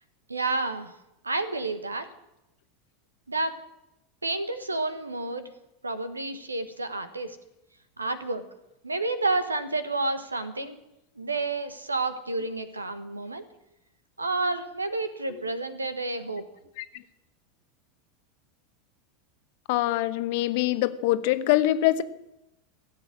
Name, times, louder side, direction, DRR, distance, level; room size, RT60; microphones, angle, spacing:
voice 1, 0.3-0.9 1.2-2.1 3.3-3.5 4.2-5.5 5.8-7.4 8.0-8.4 8.8-10.8 11.2-13.4 14.2-16.4, right 2 dB, 85° right, 11 dB, 1.3 m, -30 dB
voice 2, 19.7-22.0, left 15 dB, 55° left, 13 dB, 1.0 m, -24 dB
16.5 x 8.1 x 9.9 m, 0.89 s
figure-of-eight pair, 85°, 0 cm